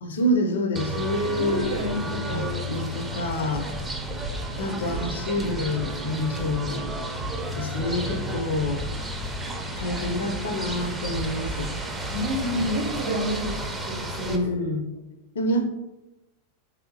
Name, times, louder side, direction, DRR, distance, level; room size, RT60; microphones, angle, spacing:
voice 1, 0.0-3.7 4.6-6.9 7.6-8.8 9.7-11.7 14.3-14.8 15.3-15.7, left 1 dB, 65° left, 6 dB, 0.4 m, -27 dB
sound 1, 0.8-14.4, right 1 dB, 10° right, 0.4 m, -32 dB
voice 2, 1.3-2.7 12.1-13.6 13.8-14.5, equal, 60° right, -2 dB, 0.6 m, -29 dB
sound 2, 3.5-3.6 4.2-4.5 4.9-5.0 5.5-5.9 6.3-6.7 7.2-7.3 7.7-8.1 8.7-9.3 9.7-10.4 11.0-12.1, right 1 dB, 90° left, 0.7 m, -37 dB
3.5 x 2.7 x 2.7 m, 0.98 s
figure-of-eight pair, 90°, 0 cm